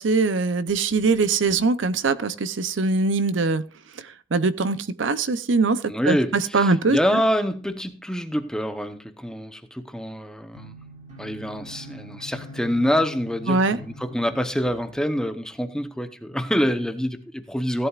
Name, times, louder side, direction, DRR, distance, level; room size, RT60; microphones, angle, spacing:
voice 1, 0.0-3.6 4.0-7.0 13.5-13.8, right 3 dB, 65° right, 0.6 m, -22 dB
voice 2, 5.9-10.7 11.2-17.9, equal, 5° left, 0.8 m, -26 dB
sound 1, 10.5-15.1, left 1 dB, 40° right, 5.5 m, -43 dB
16.5 x 11.5 x 2.4 m
head